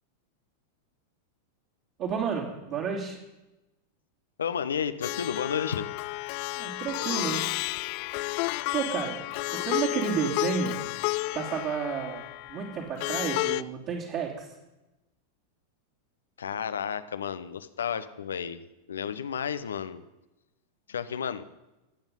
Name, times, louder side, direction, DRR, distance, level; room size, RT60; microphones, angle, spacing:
voice 1, 2.0-3.2 6.6-7.6 8.7-9.2 9.5-10.8 11.3-14.5, right 7 dB, 40° right, -5 dB, 3.1 m, -31 dB
voice 2, 4.4-5.9 16.4-18.6 18.9-20.0 20.9-21.4, left 7 dB, 65° left, 13 dB, 0.9 m, -32 dB
Plucked string instrument, 5.0-13.6, left 22 dB, 45° left, 0.4 m, -31 dB
27.5 x 9.2 x 5.5 m, 0.99 s
figure-of-eight pair, 90°, 0 cm